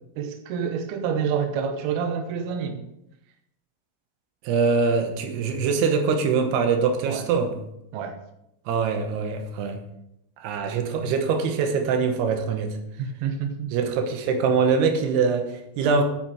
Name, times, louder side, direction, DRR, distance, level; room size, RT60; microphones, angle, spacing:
voice 1, 0.2-2.8 7.1-7.2 7.9-8.2 13.0-13.7, right 7 dB, 90° right, 2.2 m, -28 dB
voice 2, 4.4-7.6 8.7-9.8 10.4-12.8 13.7-16.0, right 5 dB, 70° right, 2.6 m, -23 dB
9.6 x 8.8 x 4.9 m
omnidirectional pair, 5.9 m